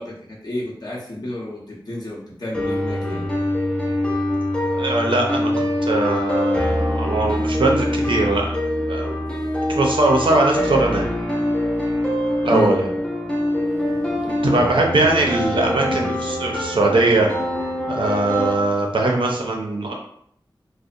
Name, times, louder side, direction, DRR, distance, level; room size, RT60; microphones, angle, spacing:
voice 1, 0.0-3.3 9.2-9.3 11.7-11.8 12.5-12.8 13.6-14.4, left 1 dB, 50° left, -5 dB, 0.8 m, -31 dB
sound 1, 2.5-18.5, left 1 dB, 10° left, 0.5 m, -24 dB
voice 2, 4.7-8.6 8.9-9.2 9.7-11.1 12.4-12.9 14.2-17.3 17.9-19.9, right 2 dB, 70° right, 0 dB, 0.5 m, -20 dB
2.7 x 2.0 x 2.5 m, 0.66 s
wide cardioid pair, 60°, 9 cm